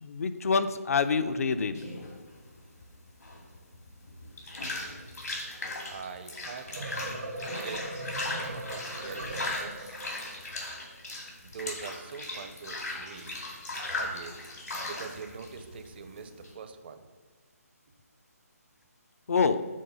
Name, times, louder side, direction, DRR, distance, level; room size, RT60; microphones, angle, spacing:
voice 1, 0.0-1.8 19.3-19.6, left 5 dB, 60° left, 10 dB, 0.5 m, -26 dB
sound 1, 1.7-16.5, left 2 dB, 85° left, 2.2 m, -38 dB
voice 2, 5.9-6.7 7.4-7.9 8.2-10.0 11.4-13.4 14.0-14.4 14.8-17.1, right 5 dB, 40° right, 8 dB, 0.5 m, -43 dB
sound 2, 6.6-10.3, right 2 dB, 90° right, 1.5 m, -39 dB
6.4 x 3.8 x 5.5 m, 1.3 s
figure-of-eight pair, 155°, 9 cm